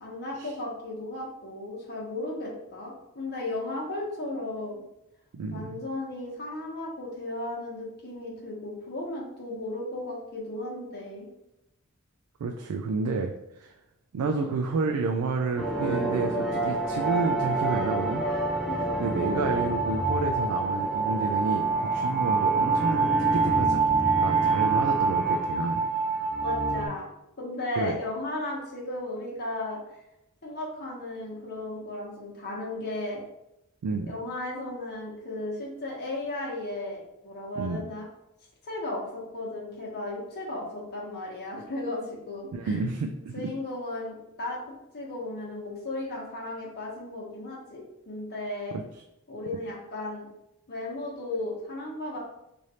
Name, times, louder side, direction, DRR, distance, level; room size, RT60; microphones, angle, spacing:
voice 1, 0.0-4.8 5.5-11.3 14.2-14.5 18.6-19.0 26.4-27.1 27.4-29.8 30.4-33.2 34.0-38.0 38.6-42.8 43.3-44.6 44.9-48.8 49.3-50.3 50.7-52.2, left 2 dB, 45° left, -3 dB, 1.1 m, -35 dB
voice 2, 5.3-5.8 12.4-13.3 13.6-13.7 14.1-18.2 19.0-23.8 24.2-25.8 27.8-28.0 33.8-34.1 37.6-37.8 42.5-43.5 48.7-48.8, right 4 dB, 80° right, 3 dB, 0.3 m, -30 dB
sound 1, 15.6-26.9, right 3 dB, ahead, 0.4 m, -26 dB
3.2 x 2.6 x 4.1 m, 0.87 s
head